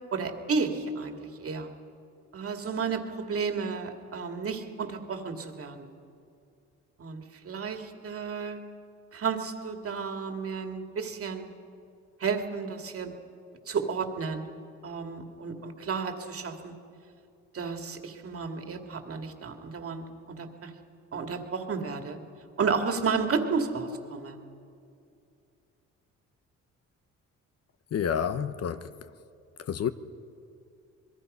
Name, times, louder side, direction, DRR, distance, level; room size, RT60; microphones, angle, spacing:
voice 1, 0.1-1.7 2.3-5.9 7.0-8.6 9.1-11.5 12.2-13.1 13.7-14.5 14.8-16.7 17.5-20.7 21.1-22.2 22.6-24.4, right 5 dB, 50° right, 2.3 m, -32 dB
voice 2, 27.9-28.9 29.6-29.9, left 8 dB, 55° left, 0.9 m, -29 dB
26.0 x 22.0 x 5.6 m
cardioid pair, 90°, 30 cm